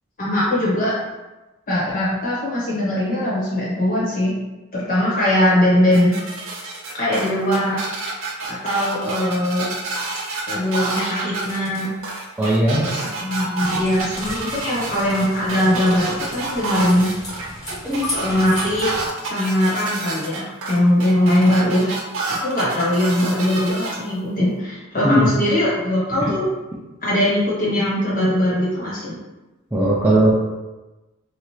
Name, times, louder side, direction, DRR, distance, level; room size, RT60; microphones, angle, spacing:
voice 1, 0.2-0.9 1.7-4.3 4.7-6.1 6.9-7.8 8.5-9.7 10.5-11.9 12.8-17.1 18.1-18.9 19.3-21.9 22.3-26.4 27.0-29.2, left 1 dB, 40° left, -7 dB, 1.2 m, -20 dB
sound 1, 5.9-24.0, right 3 dB, 65° right, 0.5 m, -29 dB
voice 2, 12.4-12.9 17.8-18.1 25.0-25.3 26.2-26.3 29.7-30.3, right 1 dB, 10° right, -7 dB, 0.4 m, -18 dB
sound 2, 13.6-19.1, left 1 dB, 20° left, 1.1 m, -34 dB
2.8 x 2.4 x 3.2 m, 1.1 s
head